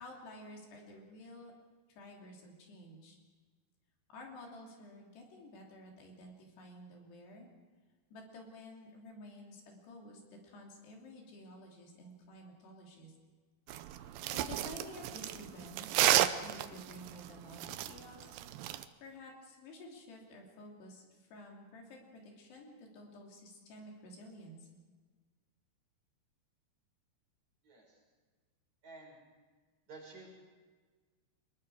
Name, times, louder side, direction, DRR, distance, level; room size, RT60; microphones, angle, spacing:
voice 1, 0.0-1.5 1.9-3.2 4.1-7.5 8.1-13.1 13.8-18.2 19.0-24.7, left 1 dB, 75° left, 0 dB, 5.1 m, -52 dB
sound 1, 13.7-18.8, right 13 dB, 80° right, 2.1 m, -32 dB
voice 2, 27.6-28.0 28.8-29.2 29.9-30.4, right 3 dB, 45° right, -3 dB, 7.5 m, -52 dB
25.5 x 21.0 x 4.8 m, 1.4 s
omnidirectional pair, 4.8 m